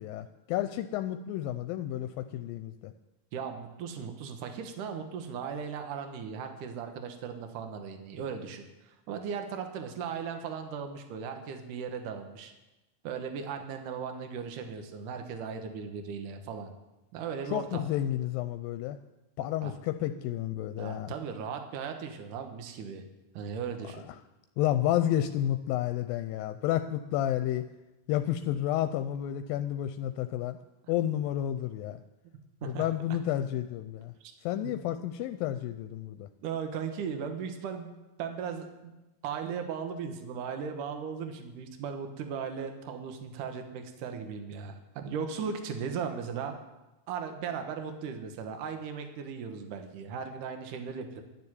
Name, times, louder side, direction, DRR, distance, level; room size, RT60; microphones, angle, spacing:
voice 1, 0.0-2.9 17.5-19.0 19.4-21.1 23.9-24.0 24.6-27.7 28.1-30.6 30.9-32.0 32.6-34.1 34.4-36.3, left 12 dB, 85° left, 9 dB, 2.3 m, -31 dB
voice 2, 3.3-12.5 13.0-16.7 17.1-17.8 19.6-19.7 20.8-23.0 23.3-24.1 32.6-32.9 34.2-34.3 34.6-34.7 36.4-37.9 38.2-38.7 39.2-46.5 47.1-51.2, right 6 dB, 70° right, 5 dB, 2.6 m, -37 dB
12.5 x 7.0 x 9.8 m, 1.0 s
omnidirectional pair, 4.1 m